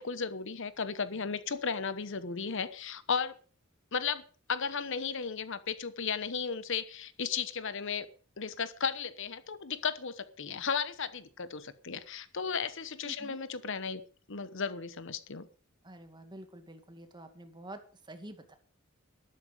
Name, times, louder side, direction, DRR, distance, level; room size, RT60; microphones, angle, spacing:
voice 1, 0.0-3.4 3.9-4.2 4.5-8.1 8.4-14.0 14.3-15.5, left 6 dB, 65° left, 14 dB, 1.0 m, -35 dB
voice 2, 13.0-13.4 15.8-18.6, right 1 dB, 20° right, 7 dB, 2.1 m, -48 dB
13.0 x 12.5 x 5.1 m, 0.40 s
head